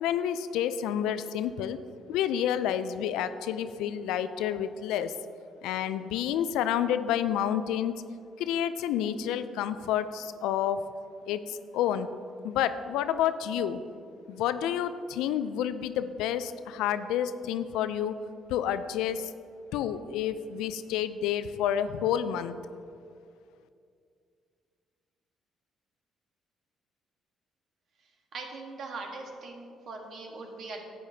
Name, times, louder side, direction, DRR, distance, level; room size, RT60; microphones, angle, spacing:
voice 1, 0.0-1.8 2.1-5.2 5.6-8.0 8.4-10.8 11.3-12.1 12.4-13.8 14.3-18.2 18.5-19.3 19.7-22.5, left 10 dB, 80° left, 12 dB, 0.3 m, -29 dB
voice 2, 28.3-30.9, right 3 dB, 60° right, 2 dB, 1.3 m, -41 dB
10.5 x 8.5 x 2.7 m, 2.4 s
supercardioid pair, 60°, 0 cm